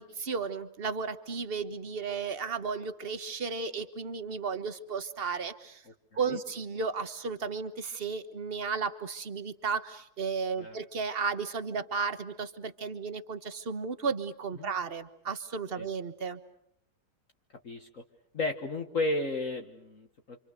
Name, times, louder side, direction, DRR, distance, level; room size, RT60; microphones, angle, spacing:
voice 1, 0.0-5.8 6.1-16.4, right 5 dB, 35° right, 11 dB, 1.4 m, -34 dB
voice 2, 17.6-18.0 18.3-20.4, left 2 dB, 45° left, 4 dB, 1.7 m, -33 dB
28.5 x 26.5 x 6.7 m, 0.74 s
omnidirectional pair, 2.0 m